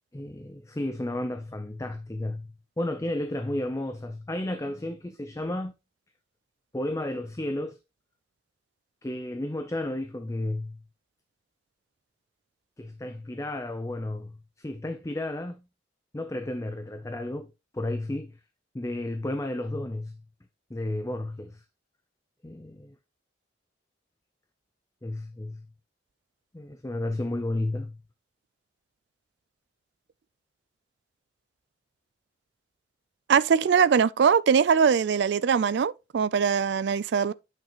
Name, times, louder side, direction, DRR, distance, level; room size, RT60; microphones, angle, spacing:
voice 1, 0.1-5.7 6.7-7.8 9.0-10.8 12.8-15.6 16.1-18.4 18.7-20.2 20.7-21.6 22.4-22.9 25.0-25.6 26.5-28.0, left 1 dB, 15° left, 0.5 m, -32 dB
voice 2, 33.3-37.3, right 6 dB, 65° right, 0.4 m, -22 dB
8.9 x 5.7 x 3.0 m
head